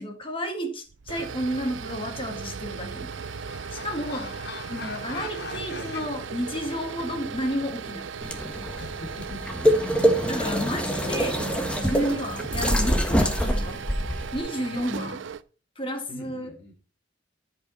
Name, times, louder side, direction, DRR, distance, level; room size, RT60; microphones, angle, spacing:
voice 1, 0.0-3.3 3.7-4.3 4.7-8.1 10.3-11.4 11.8-13.8 14.3-15.2 15.8-16.6, equal, 30° left, 1.8 m, -31 dB
sound 1, 0.9-15.4, right 6 dB, 80° right, 0.5 m, -37 dB
sound 2, 2.4-6.1, left 5 dB, 60° left, 1.1 m, -42 dB
voice 2, 4.0-4.6 8.8-9.4 10.8-11.1 16.1-16.7, left 1 dB, 85° left, 2.4 m, -44 dB
sound 3, 8.2-14.4, equal, 5° left, 1.3 m, -25 dB
14.5 x 5.6 x 4.1 m
head